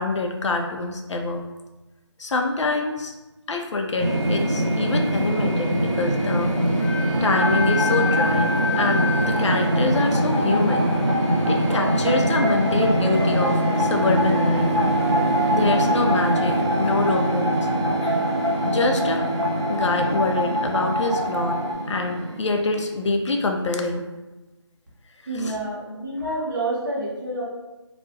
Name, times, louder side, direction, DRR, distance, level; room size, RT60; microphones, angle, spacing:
voice 1, 0.0-1.4 2.2-3.1 3.5-6.5 6.8-8.5 8.8-10.8 11.5-14.7 15.5-17.5 18.7-19.2 19.7-21.6 21.9-24.1 25.4-25.5, left 3 dB, 80° left, 3 dB, 0.4 m, -25 dB
sound 1, 4.0-23.1, right 1 dB, 70° right, 1.0 m, -24 dB
Wind instrument woodwind instrument, 6.8-9.6, left 5 dB, 10° right, 0.6 m, -27 dB
sound 2, 7.1-21.7, left 1 dB, 85° right, 0.5 m, -27 dB
voice 2, 25.3-27.4, right 2 dB, 45° right, -5 dB, 0.7 m, -28 dB
2.2 x 2.0 x 2.7 m, 1.1 s
figure-of-eight pair, 170°, 15 cm